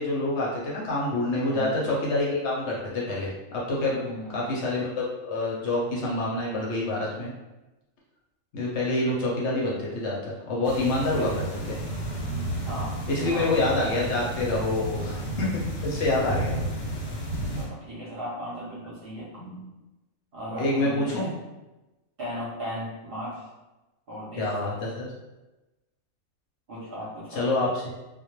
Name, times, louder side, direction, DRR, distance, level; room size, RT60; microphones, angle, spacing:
voice 1, 0.0-4.0 4.3-7.3 8.5-10.2 10.5-11.8 13.1-15.5 15.8-16.6 20.5-21.3 24.4-25.1 27.4-27.9, left 2 dB, 65° left, -4 dB, 0.8 m, -27 dB
voice 2, 1.5-1.8 4.0-4.4 11.1-11.6 12.7-13.5 15.0-15.4 17.6-19.7 20.3-21.4 22.2-23.5 24.1-24.5 26.7-27.5, equal, 55° right, -6 dB, 0.7 m, -37 dB
sound 1, 10.6-17.7, right 1 dB, 85° left, 1.1 m, -32 dB
2.2 x 2.0 x 2.9 m, 1.0 s
omnidirectional pair, 1.4 m